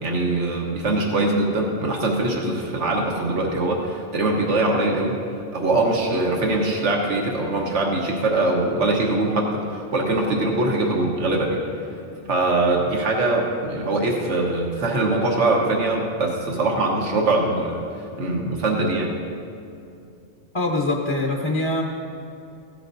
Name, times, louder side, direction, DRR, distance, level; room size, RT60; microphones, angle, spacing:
voice 1, 0.0-5.2 5.5-11.6 12.3-17.8 18.2-19.1, right 2 dB, 90° right, -1 dB, 1.5 m, -22 dB
voice 2, 20.5-21.8, left 2 dB, 25° left, 0 dB, 0.8 m, -23 dB
16.0 x 11.5 x 2.7 m, 2.6 s
omnidirectional pair, 1.2 m